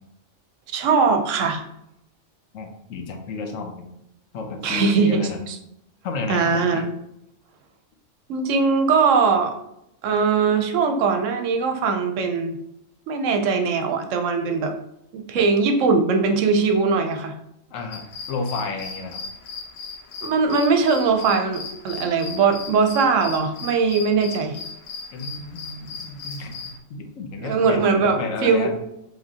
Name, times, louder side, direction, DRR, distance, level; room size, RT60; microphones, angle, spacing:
voice 1, 0.7-1.6 4.6-5.5 6.3-6.9 8.3-9.5 10.0-12.6 13.1-14.7 15.1-17.3 20.2-24.5 27.4-28.7, right 5 dB, 75° right, 6 dB, 1.0 m, -20 dB
voice 2, 2.5-3.9 4.3-5.4 6.0-6.9 15.3-15.4 17.7-19.2 25.1-28.8, left 3 dB, 85° left, 4 dB, 1.1 m, -31 dB
sound 1, 17.9-26.8, left 4 dB, 65° left, 0.7 m, -37 dB
5.0 x 3.2 x 2.8 m, 0.80 s
omnidirectional pair, 1.3 m